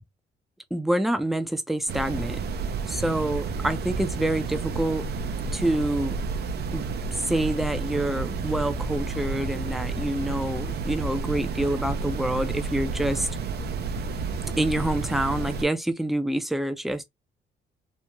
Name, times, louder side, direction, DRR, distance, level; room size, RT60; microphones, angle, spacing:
voice 1, 0.7-2.4 2.9-5.1 5.5-6.1 6.7-6.9 7.3-13.3 14.6-17.0, right 1 dB, ahead, 0.4 m, -27 dB
sound 1, 1.9-15.7, right 4 dB, 55° right, 0.5 m, -31 dB
3.0 x 2.0 x 2.2 m
cardioid pair, 90°, 20 cm